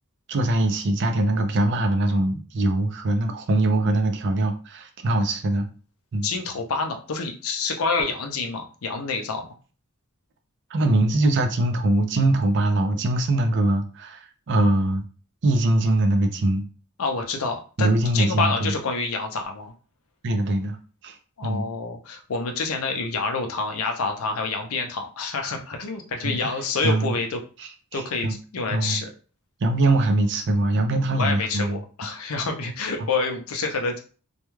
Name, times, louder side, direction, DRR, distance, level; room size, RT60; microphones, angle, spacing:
voice 1, 0.3-5.7 6.1-6.3 10.7-15.0 15.4-16.7 17.8-18.7 20.2-20.8 21.0-21.2 21.4-21.7 26.2-26.5 26.8-27.2 27.6-28.3 28.7-29.0 29.6-31.8, right 2 dB, 55° right, 6 dB, 0.5 m, -22 dB
voice 2, 6.2-9.4 17.0-19.7 21.4-27.4 27.9-29.1 31.2-34.0, left 4 dB, 80° left, 4 dB, 0.6 m, -27 dB
2.3 x 2.2 x 3.0 m, 0.37 s
head